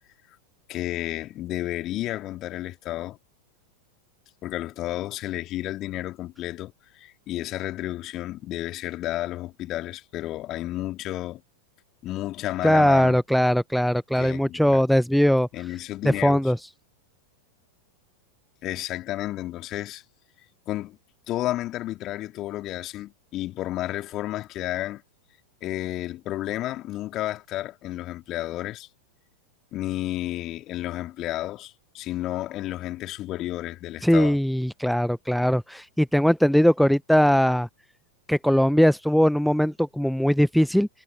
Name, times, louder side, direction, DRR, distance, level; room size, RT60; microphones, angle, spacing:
voice 1, 0.7-3.2 4.4-11.4 12.0-13.2 14.1-14.8 15.5-16.5 18.6-20.0 20.7-21.0 21.3-25.0 25.6-28.9 29.7-34.4, left 15 dB, 35° left, 3.2 m, -32 dB
voice 2, 12.6-15.5 16.0-16.6 34.0-37.7 38.3-40.9, equal, ahead, 0.8 m, -20 dB
figure-of-eight pair, 90°, 0 cm